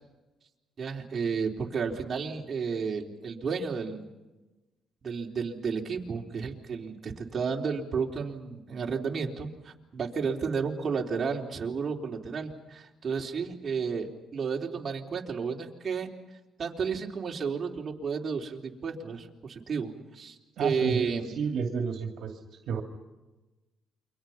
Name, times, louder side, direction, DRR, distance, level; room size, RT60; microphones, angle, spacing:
voice 1, 0.8-4.1 5.0-16.1 16.6-21.3, right 5 dB, 45° right, 0 dB, 3.6 m, -32 dB
voice 2, 20.6-21.1 21.4-22.3 22.7-22.8, right 6 dB, 75° right, 4 dB, 2.5 m, -30 dB
29.0 x 24.5 x 5.8 m, 1.1 s
cardioid pair, 90°, 0 cm